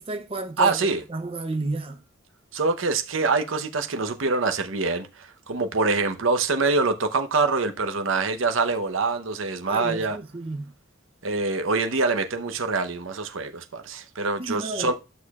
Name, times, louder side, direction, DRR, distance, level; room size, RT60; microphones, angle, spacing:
voice 1, 0.0-2.0 9.6-10.7 14.4-14.9, right 2 dB, 30° right, 0.6 m, -32 dB
voice 2, 0.6-1.0 2.5-10.2 11.2-14.9, right 3 dB, 85° right, 0.8 m, -25 dB
12.0 x 6.5 x 2.4 m
head